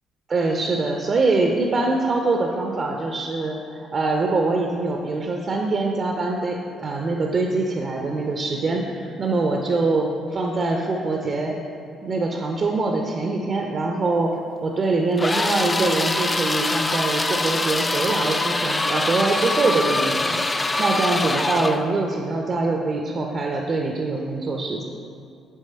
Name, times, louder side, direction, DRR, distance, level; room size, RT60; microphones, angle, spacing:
voice 1, 0.3-11.6 12.0-24.8, right 3 dB, 45° right, 1 dB, 0.5 m, -24 dB
sound 1, 15.2-21.9, left 2 dB, 25° left, 0.4 m, -24 dB
8.2 x 3.3 x 4.2 m, 2.4 s
hypercardioid pair, 45°, 0 cm